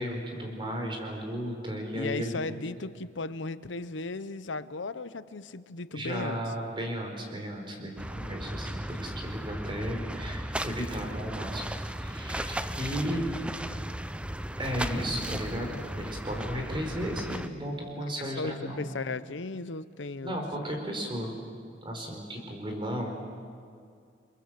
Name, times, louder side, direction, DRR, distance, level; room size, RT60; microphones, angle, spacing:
voice 1, 0.0-2.4 5.9-11.6 12.0-13.2 14.6-18.9 20.2-21.3 21.8-23.1, equal, 25° right, 2 dB, 4.6 m, -34 dB
voice 2, 1.9-6.4 13.1-13.2 17.9-18.0 18.4-20.4, left 3 dB, 75° left, 14 dB, 0.9 m, -36 dB
sound 1, 8.0-17.5, right 1 dB, 5° right, 0.7 m, -36 dB
29.5 x 23.0 x 7.6 m, 2.3 s
head